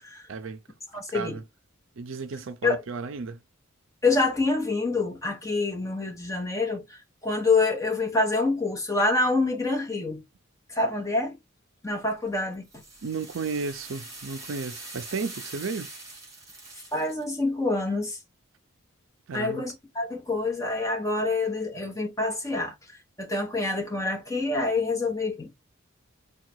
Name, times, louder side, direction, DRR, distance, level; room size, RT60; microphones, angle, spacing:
voice 1, 0.3-0.6 1.1-1.4 2.0-3.4 13.0-15.9 19.3-19.7, right 4 dB, 65° right, 0.5 m, -33 dB
voice 2, 0.9-1.4 2.6-2.8 4.0-10.2 10.7-11.4 11.8-12.6 16.9-18.2 19.3-22.7 23.2-25.5, left 3 dB, 15° left, 1.2 m, -26 dB
sound 1, 12.1-17.2, right 2 dB, 15° right, 1.5 m, -43 dB
3.7 x 2.3 x 4.5 m
head